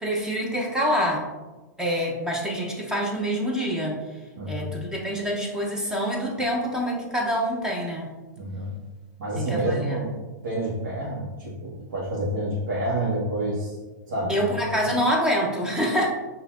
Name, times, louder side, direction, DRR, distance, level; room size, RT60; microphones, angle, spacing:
voice 1, 0.0-1.3 1.8-4.0 4.5-8.1 9.4-10.0 14.3-16.1, equal, 5° right, -2 dB, 0.7 m, -26 dB
voice 2, 4.4-4.7 8.4-8.7 9.2-10.1 10.4-13.8 14.1-14.4, right 1 dB, 65° right, -8 dB, 1.4 m, -28 dB
5.8 x 2.8 x 2.5 m, 1.2 s
hypercardioid pair, 130°, 10 cm